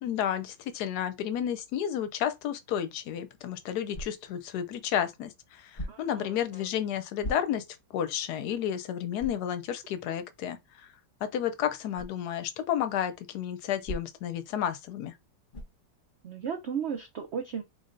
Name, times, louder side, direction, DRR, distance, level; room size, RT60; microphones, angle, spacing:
voice 1, 0.0-7.6 7.9-10.6 11.2-15.1, left 10 dB, 75° left, 1.1 m, -31 dB
sound 1, 3.9-4.4 5.7-6.2 7.2-7.8 8.3-8.4 9.2-9.5 11.9-12.2 13.8-14.4 15.5-15.9, equal, 35° left, 1.1 m, -39 dB
voice 2, 5.9-6.7 16.2-17.6, right 7 dB, 85° right, 0.6 m, -35 dB
3.9 x 3.2 x 2.5 m
omnidirectional pair, 1.9 m